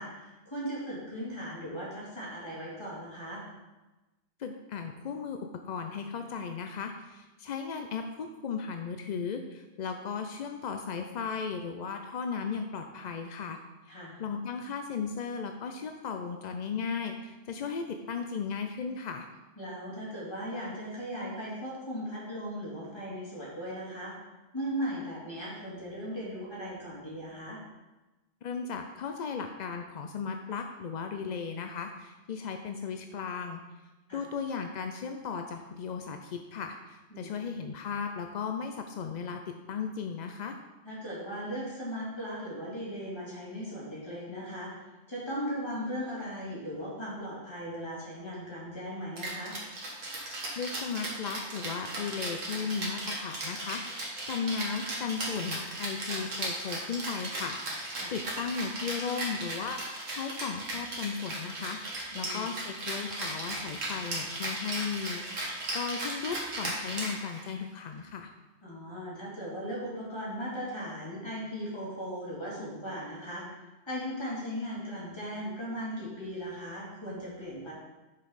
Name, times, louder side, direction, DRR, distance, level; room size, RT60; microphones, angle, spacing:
voice 1, 0.0-3.4 13.9-14.2 19.6-24.1 24.5-27.6 34.1-34.2 37.1-37.3 40.8-44.7 45.1-49.6 58.0-58.1 62.1-62.5 68.6-73.4 73.9-77.7, equal, 20° left, -7 dB, 2.7 m, -38 dB
voice 2, 4.4-13.6 14.2-19.3 28.4-33.6 34.1-40.6 50.6-61.8 62.1-68.3, left 6 dB, 60° left, 5 dB, 0.4 m, -36 dB
Rattle (instrument), 49.2-67.6, right 1 dB, 80° right, 2.0 m, -36 dB
6.4 x 5.3 x 5.6 m, 1.1 s
omnidirectional pair, 1.3 m